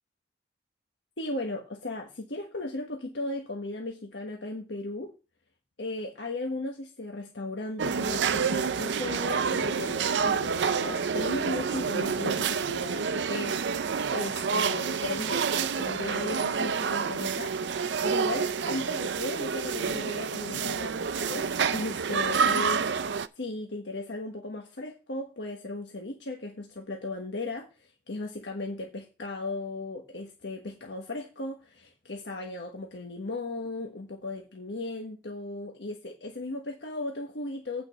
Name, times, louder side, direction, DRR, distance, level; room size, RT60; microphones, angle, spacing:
voice 1, 1.2-5.1 5.8-17.5 17.8-37.8, left 2 dB, 85° left, 1 dB, 1.4 m, -36 dB
sound 1, 7.8-23.3, right 6 dB, 90° right, 0.5 m, -28 dB
8.7 x 5.1 x 6.7 m, 0.31 s
head